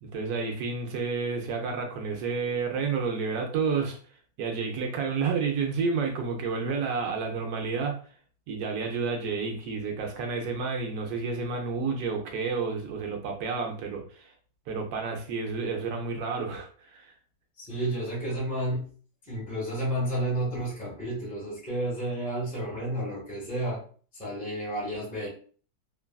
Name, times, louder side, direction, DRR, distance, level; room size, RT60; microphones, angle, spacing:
voice 1, 0.0-4.0 4.4-8.0 8.5-14.3 14.7-17.1, right 5 dB, 80° right, 1.2 m, -30 dB
voice 2, 17.6-18.9 19.3-23.8 24.1-25.3, right 1 dB, 5° left, 1.1 m, -31 dB
3.1 x 2.4 x 2.2 m
omnidirectional pair, 1.6 m